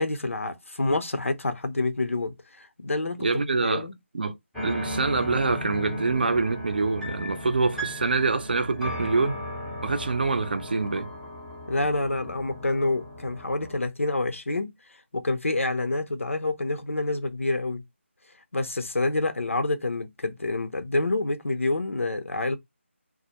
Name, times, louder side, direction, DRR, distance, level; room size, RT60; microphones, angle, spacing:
voice 1, 0.0-4.0 11.7-14.7 15.1-17.8 18.5-22.6, left 2 dB, 90° left, 0.6 m, -27 dB
voice 2, 3.2-3.8 4.1-4.3 4.6-9.4 9.8-11.1, right 3 dB, 45° right, 0.5 m, -25 dB
sound 1, 4.5-13.8, equal, ahead, 0.5 m, -36 dB
2.2 x 2.1 x 2.8 m
figure-of-eight pair, 165°, 7 cm